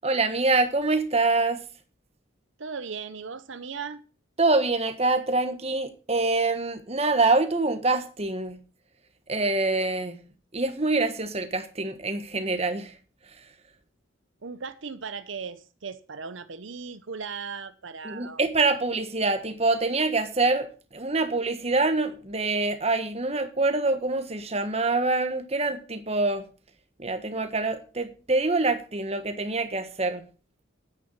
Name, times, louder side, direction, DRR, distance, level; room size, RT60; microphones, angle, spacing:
voice 1, 0.0-1.6 4.4-8.6 9.3-10.1 10.5-12.9 18.0-26.5 27.0-30.2, right 3 dB, 30° right, 1.3 m, -25 dB
voice 2, 2.6-4.0 14.4-18.4, right 5 dB, 70° right, 0.8 m, -37 dB
10.0 x 9.4 x 5.5 m
head